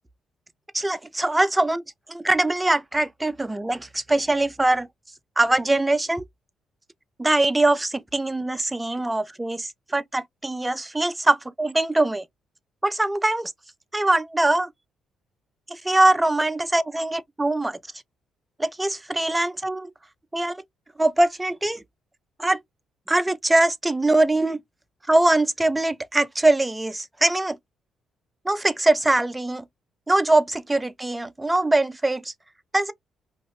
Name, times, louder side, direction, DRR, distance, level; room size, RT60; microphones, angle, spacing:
voice 1, 0.7-1.8 2.1-4.9 5.4-6.2 7.2-12.2 12.8-13.5 13.9-14.7 15.7-17.8 18.6-19.9 20.3-20.6 21.0-21.8 22.4-22.6 23.1-24.6 25.1-27.6 28.5-29.6 30.1-32.3 32.7-32.9, right 2 dB, 10° right, 0.4 m, -22 dB
2.5 x 2.5 x 3.0 m
cardioid pair, 90°, 0 cm